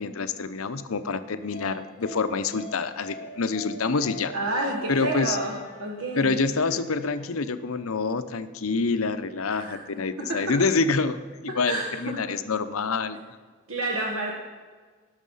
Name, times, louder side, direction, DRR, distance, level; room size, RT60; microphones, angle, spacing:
voice 1, 0.0-4.3 4.9-5.4 6.1-13.2, left 4 dB, 80° left, 11 dB, 0.7 m, -27 dB
sound 1, 1.4-7.5, left 1 dB, 50° left, 3.3 m, -44 dB
voice 2, 4.3-5.5 5.8-6.4 9.5-9.8 10.2-10.5 11.5-12.1 13.7-14.3, right 2 dB, 75° right, -1 dB, 1.5 m, -29 dB
18.5 x 6.5 x 5.5 m, 1.5 s
head